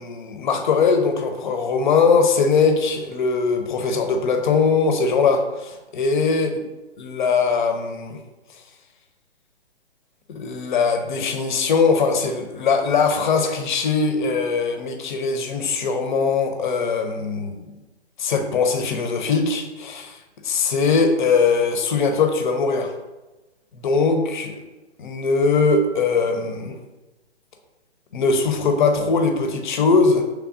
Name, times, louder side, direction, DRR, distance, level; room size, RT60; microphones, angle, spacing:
voice 1, 0.0-6.5 7.0-8.2 10.3-17.5 18.2-20.2 20.4-22.9 23.7-24.6 25.0-26.8 28.1-30.2, left 4 dB, 45° left, 5 dB, 0.6 m, -21 dB
6.0 x 3.2 x 2.5 m, 1.1 s
hypercardioid pair, 140°, 34 cm